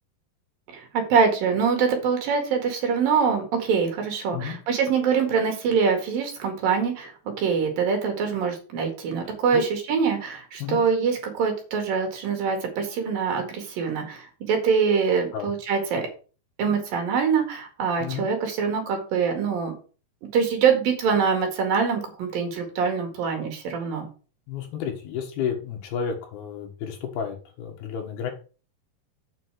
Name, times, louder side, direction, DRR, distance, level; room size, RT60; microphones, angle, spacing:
voice 1, 0.7-7.1 7.4-16.1 16.6-19.7 20.3-24.1, right 6 dB, 60° right, 3 dB, 3.4 m, -24 dB
voice 2, 9.2-9.6 10.6-10.8 15.3-15.5 18.0-18.3 24.5-28.3, left 7 dB, 70° left, 3 dB, 3.4 m, -32 dB
7.6 x 5.5 x 6.3 m, 0.37 s
omnidirectional pair, 4.8 m